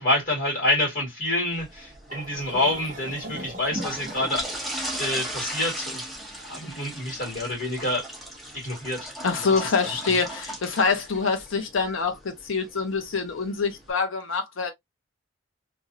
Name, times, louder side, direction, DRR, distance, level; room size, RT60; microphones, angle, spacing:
voice 1, 0.0-4.5 4.9-6.0 6.4-8.0 8.5-9.1 9.4-9.5, left 1 dB, 45° left, 1.9 m, -27 dB
sound 1, 1.5-13.9, right 1 dB, ahead, 0.8 m, -38 dB
sound 2, 2.1-7.3, right 1 dB, 40° right, 0.8 m, -42 dB
voice 2, 9.2-14.7, left 4 dB, 85° left, 0.6 m, -25 dB
3.0 x 2.5 x 2.5 m
head